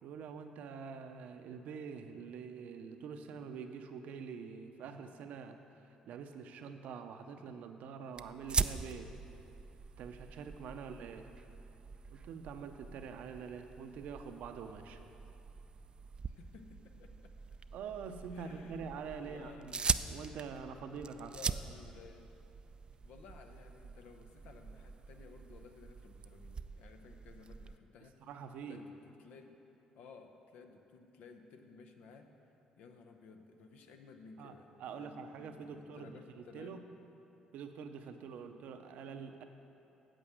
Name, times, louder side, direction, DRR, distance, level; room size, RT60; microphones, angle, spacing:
voice 1, 0.0-5.6 5.8-9.1 10.0-11.3 12.1-15.0 17.7-21.3 28.2-28.9 34.4-34.5 34.8-36.8 37.5-39.4, right 6 dB, 75° right, 7 dB, 0.7 m, -45 dB
sound 1, 8.2-27.8, right 5 dB, 40° right, 0.4 m, -42 dB
voice 2, 16.3-17.3 18.3-18.9 19.2-19.9 21.1-22.3 23.0-28.2 28.7-29.6 30.0-32.3 32.8-36.8 38.3-38.6, left 5 dB, 75° left, 5 dB, 0.8 m, -56 dB
8.9 x 7.7 x 6.3 m, 2.9 s
supercardioid pair, 65°, 3 cm